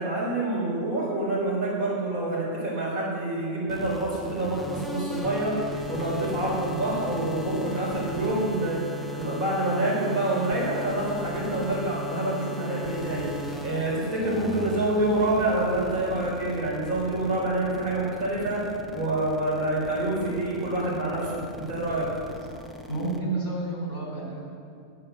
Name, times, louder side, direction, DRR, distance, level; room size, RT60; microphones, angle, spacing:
voice 1, 0.0-5.5 5.9-8.8 9.1-13.3 13.6-18.6 18.9-22.1, right 2 dB, 85° right, -5 dB, 4.7 m, -27 dB
sound 1, 3.7-23.2, left 1 dB, ahead, 0.7 m, -38 dB
voice 2, 22.9-24.4, right 2 dB, 75° left, -3 dB, 4.3 m, -30 dB
17.0 x 8.4 x 6.8 m, 2.4 s
omnidirectional pair, 1.4 m